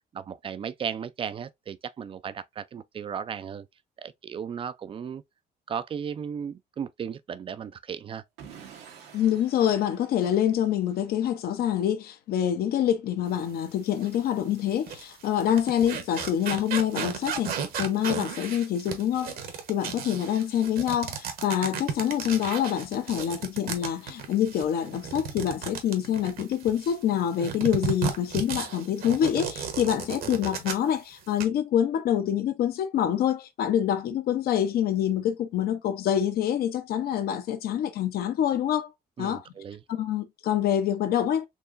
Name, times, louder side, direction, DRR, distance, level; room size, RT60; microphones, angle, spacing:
voice 1, 0.1-3.7 4.0-5.2 5.7-8.2 30.2-30.3 39.2-39.8, right 7 dB, 30° right, 0.4 m, -35 dB
Explosion / Shatter, 8.4-11.1, right 7 dB, 90° right, 1.3 m, -49 dB
voice 2, 9.1-19.4 19.7-38.9 39.2-39.4 39.9-41.5, left 10 dB, 65° left, 0.8 m, -26 dB
sound 1, 14.0-14.2 14.7-27.0 27.4-31.0 31.2-31.4, right 6 dB, 60° right, 1.1 m, -34 dB
4.5 x 2.9 x 2.5 m
cardioid pair, 110°, 17 cm